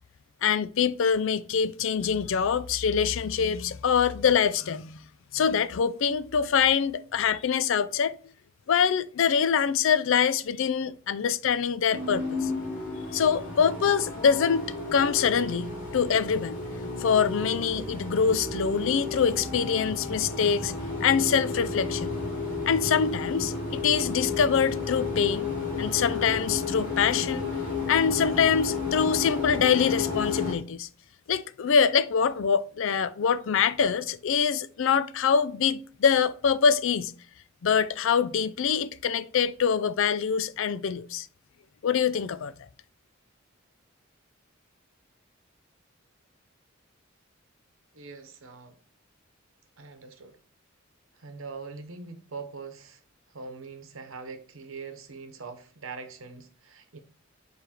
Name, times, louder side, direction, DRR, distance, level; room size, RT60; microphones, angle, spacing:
voice 1, 0.4-5.0 5.3-8.2 8.7-12.5 13.1-16.6 17.0-20.7 21.0-22.1 22.7-25.5 25.8-27.5 27.9-30.9 31.3-37.1 37.6-41.3 41.8-42.5, left 7 dB, 65° left, 0.4 m, -24 dB
sound 1, 11.9-30.5, left 4 dB, 40° left, 2.4 m, -32 dB
voice 2, 47.9-48.8 49.8-50.4 51.2-53.0 53.3-57.0, right 4 dB, 70° right, 1.0 m, -42 dB
6.9 x 3.4 x 4.3 m
head